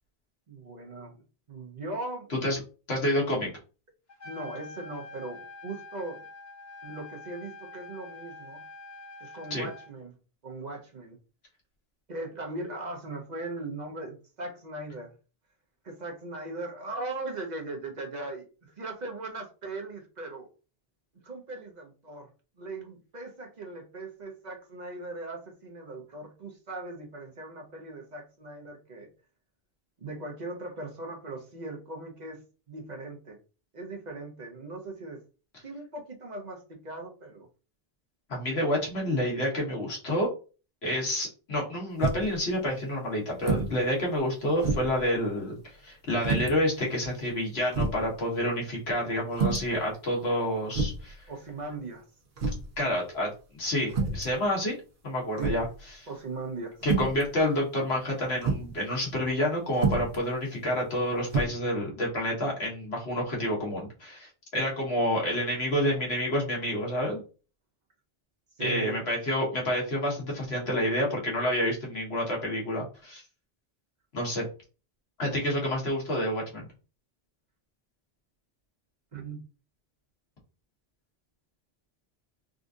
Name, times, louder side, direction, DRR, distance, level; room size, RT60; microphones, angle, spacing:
voice 1, 0.5-1.2 1.5-2.3 4.2-6.2 6.8-8.6 9.2-10.1 10.4-11.2 12.1-15.1 15.8-20.5 21.2-22.3 22.6-29.1 30.0-32.4 32.7-33.4 33.7-35.2 35.6-37.5 51.3-52.0 55.4-55.6 56.1-56.8 68.6-69.0 79.1-79.4, right 2 dB, 50° right, 2 dB, 0.8 m, -39 dB
voice 2, 2.9-3.5 9.5-9.7 38.3-40.3 40.8-51.2 52.8-54.8 55.0-55.7 56.0-56.1 56.8-67.2 68.6-73.2 74.1-74.4 75.2-76.7, left 1 dB, 80° left, -2 dB, 1.5 m, -29 dB
Trumpet, 4.1-9.9, left 3 dB, 45° left, 1.0 m, -46 dB
sound 1, 42.0-42.4 43.4-43.8 44.1-44.2 44.6-45.0 46.2-46.5 47.3-47.4 47.7-48.0 49.3-49.7 50.7-51.1 52.4-52.7 53.9-54.3 55.4-55.7 56.8-57.2 58.4-58.7 59.7-60.2 61.2-61.4, right 4 dB, 75° right, 1.0 m, -28 dB
3.7 x 2.4 x 2.5 m, 0.34 s
omnidirectional pair, 1.1 m